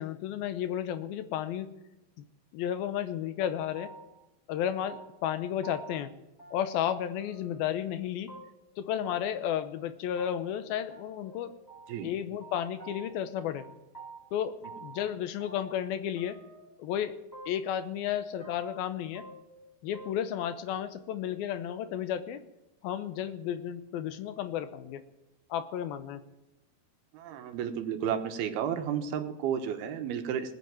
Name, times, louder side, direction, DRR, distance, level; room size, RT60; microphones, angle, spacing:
voice 1, 0.0-1.7 2.5-3.9 4.5-6.1 6.5-8.4 8.8-11.5 12.0-13.6 14.3-14.6 14.8-16.4 16.8-17.2 17.5-19.3 19.8-22.4 22.8-25.0 25.5-26.2, left 10 dB, 80° left, 10 dB, 2.7 m, -33 dB
sound 1, 3.7-4.3 4.5-5.3 5.6-6.0 6.4-6.9 7.2-7.7 8.3-8.7 9.1-9.2 9.4-9.5 9.8-9.9 10.2-10.3 10.5-10.6 10.9-12.1 12.4-13.3 13.6-15.1 15.4-15.9 16.2-17.0 17.3-17.8 18.1-18.8 19.1-20.4 20.7-20.8, right 3 dB, 5° left, 3.4 m, -49 dB
voice 2, 27.1-30.5, right 8 dB, 85° right, 6 dB, 3.2 m, -32 dB
20.0 x 8.3 x 7.6 m, 0.96 s
omnidirectional pair, 4.3 m